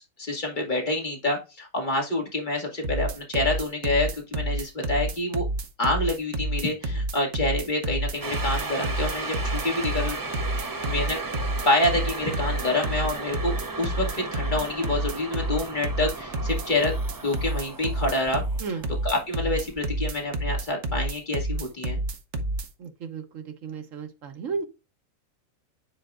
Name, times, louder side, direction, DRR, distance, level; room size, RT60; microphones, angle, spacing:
voice 1, 0.2-5.4 5.8-10.2 10.9-11.2 11.7-18.4 19.0-22.0, left 2 dB, 35° left, 2.3 m, -27 dB
sound 1, 2.8-22.7, right 1 dB, 65° right, 1.3 m, -29 dB
sound 2, 8.2-20.3 20.6-20.7, right 3 dB, 25° right, 0.5 m, -35 dB
voice 2, 22.8-24.6, right 5 dB, 80° right, 1.4 m, -34 dB
9.8 x 4.4 x 2.5 m
omnidirectional pair, 1.3 m